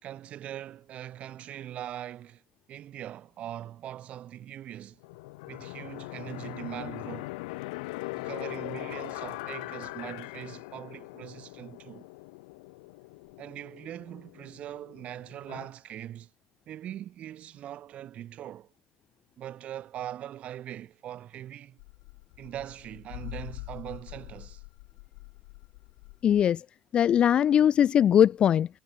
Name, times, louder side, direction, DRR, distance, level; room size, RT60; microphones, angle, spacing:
voice 1, 0.0-2.4 2.7-5.0 5.5-7.3 8.1-12.1 13.4-16.3 16.7-18.7 19.4-21.8 22.4-24.6, right 11 dB, 30° right, 4.1 m, -41 dB
sound 1, 5.0-15.7, left 24 dB, 90° left, 3.8 m, -41 dB
sound 2, 21.8-26.4, left 37 dB, 65° left, 1.5 m, -45 dB
voice 2, 26.2-26.6 26.9-28.7, left 9 dB, 25° left, 0.3 m, -21 dB
cardioid pair, 175°, 4 cm